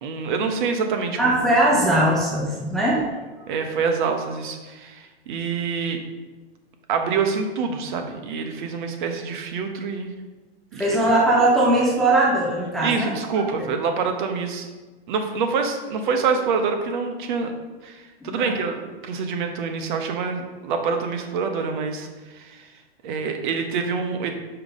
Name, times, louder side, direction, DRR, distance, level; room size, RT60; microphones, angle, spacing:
voice 1, 0.0-1.4 1.7-1.8 3.5-6.0 6.9-10.1 10.7-11.0 12.8-14.7 15.1-17.5 17.8-22.7 23.0-24.3, right 5 dB, 50° right, 5 dB, 1.0 m, -26 dB
voice 2, 1.2-3.0 10.7-13.1 13.6-13.7 18.2-18.6, right 1 dB, ahead, -5 dB, 0.4 m, -20 dB
5.6 x 5.0 x 4.1 m, 1.2 s
hypercardioid pair, 145°, 31 cm